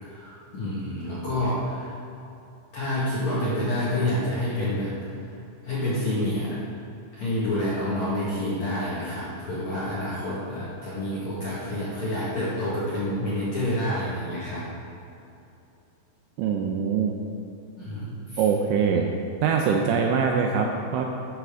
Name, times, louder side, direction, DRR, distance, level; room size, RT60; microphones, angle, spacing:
voice 1, 0.0-1.9 2.7-4.9 5.6-6.6 7.1-14.6 17.8-18.4, left 1 dB, 55° left, -9 dB, 2.0 m, -28 dB
voice 2, 16.4-17.1 18.4-19.1 19.4-21.1, right 6 dB, 80° right, 2 dB, 2.6 m, -23 dB
11.0 x 9.2 x 3.7 m, 2.7 s
omnidirectional pair, 5.6 m